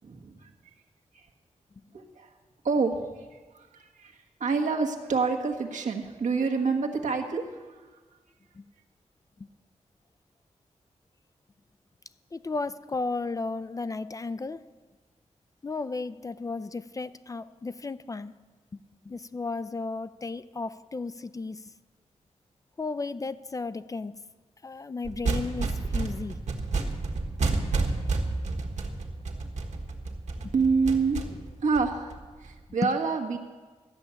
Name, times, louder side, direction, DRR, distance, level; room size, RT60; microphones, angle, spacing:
voice 1, 0.0-0.3 1.9-2.3 2.6-2.9 3.5-4.1 4.4-7.4 30.5-32.1 32.4-33.4, right 4 dB, 90° right, 2 dB, 1.4 m, -27 dB
voice 2, 12.3-14.7 15.6-18.4 19.1-21.7 22.8-24.2 24.6-26.4 30.4-30.5 32.8-32.9, left 3 dB, 30° left, 15 dB, 0.4 m, -34 dB
sound 1, 25.0-32.5, right 3 dB, 70° right, 1.5 m, -30 dB
13.0 x 6.9 x 9.8 m, 1.4 s
wide cardioid pair, 155°, 12 cm